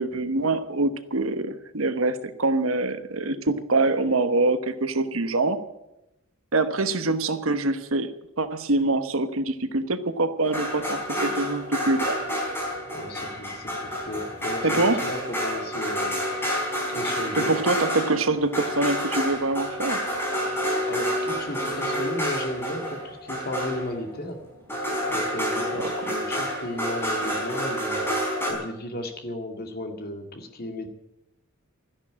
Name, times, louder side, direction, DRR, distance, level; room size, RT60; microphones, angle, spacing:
voice 1, 0.0-5.6 6.5-8.1 8.4-12.2 14.6-15.0 17.4-20.0 25.8-25.9, right 2 dB, 75° right, 11 dB, 1.2 m, -24 dB
sound 1, 10.4-24.3 24.7-28.5, equal, 10° left, 4.3 m, -29 dB
voice 2, 12.9-16.2 16.9-17.6 20.9-24.4 25.1-28.0 28.5-30.9, left 1 dB, 45° left, 5 dB, 2.2 m, -34 dB
13.5 x 10.5 x 8.7 m, 0.89 s
head